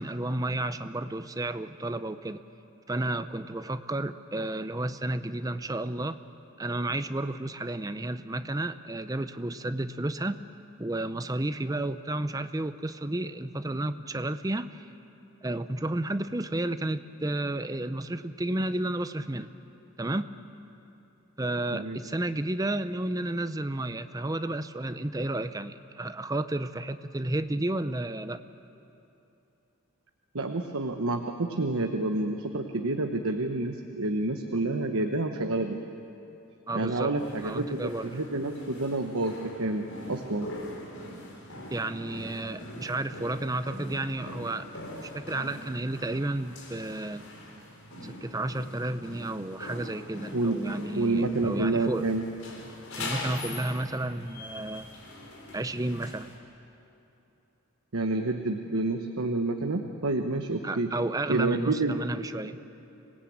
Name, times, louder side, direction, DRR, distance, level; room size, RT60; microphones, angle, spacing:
voice 1, 0.0-2.4 2.9-6.2 6.6-10.4 10.8-14.9 15.4-19.5 20.0-20.3 21.4-28.4 36.7-37.1 37.4-38.1 41.7-44.7 45.0-47.2 48.0-52.1 53.0-54.9 55.5-56.3 60.6-62.6, right 1 dB, 15° right, 11 dB, 0.5 m, -32 dB
voice 2, 30.3-35.8 36.7-40.5 50.3-50.6 50.9-52.2 57.9-60.9 61.3-61.9, right 2 dB, 75° right, 4 dB, 1.1 m, -29 dB
sound 1, 37.2-56.3, left 1 dB, 70° left, 4.4 m, -42 dB
26.0 x 18.0 x 8.7 m, 2.9 s
head